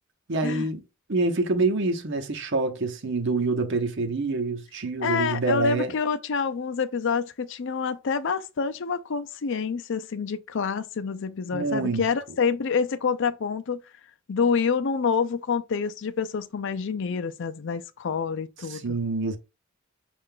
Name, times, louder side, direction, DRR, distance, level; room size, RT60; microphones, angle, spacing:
voice 1, 0.3-0.8 1.1-5.9 11.5-12.1 18.7-19.4, right 3 dB, 60° right, 0.8 m, -26 dB
voice 2, 5.0-13.8 14.3-18.8, left 5 dB, 60° left, 0.5 m, -27 dB
5.6 x 2.5 x 3.7 m
head